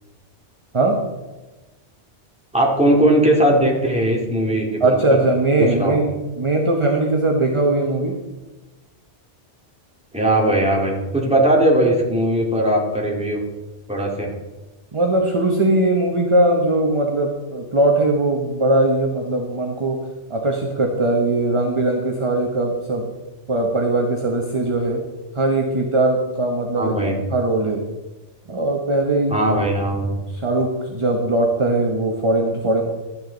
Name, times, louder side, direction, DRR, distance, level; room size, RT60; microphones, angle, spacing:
voice 1, 2.5-5.2 5.6-5.9 10.1-13.4 13.9-14.3 26.8-27.1 29.3-30.1, right 1 dB, 5° right, -2 dB, 2.2 m, -19 dB
voice 2, 4.8-8.2 14.9-20.0 20.3-23.1 23.5-25.0 25.3-27.8 28.5-29.4 30.3-32.8, right 2 dB, 25° right, 1 dB, 1.0 m, -20 dB
12.0 x 9.9 x 4.0 m, 1.1 s
omnidirectional pair, 1.2 m